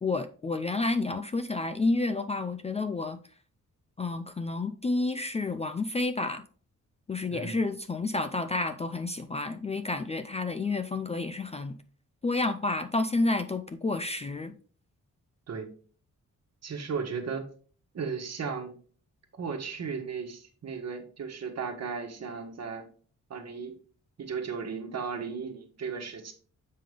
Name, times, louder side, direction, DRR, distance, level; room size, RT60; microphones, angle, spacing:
voice 1, 0.0-3.2 4.0-6.4 7.1-11.7 12.2-14.5, left 3 dB, 20° left, 8 dB, 0.3 m, -30 dB
voice 2, 7.3-7.6 15.5-15.7 16.6-17.5 17.9-18.7 19.3-22.9 23.3-23.8 24.2-26.3, right 5 dB, 55° right, 5 dB, 1.4 m, -35 dB
7.5 x 5.3 x 3.3 m, 0.42 s
wide cardioid pair, 155°, 31 cm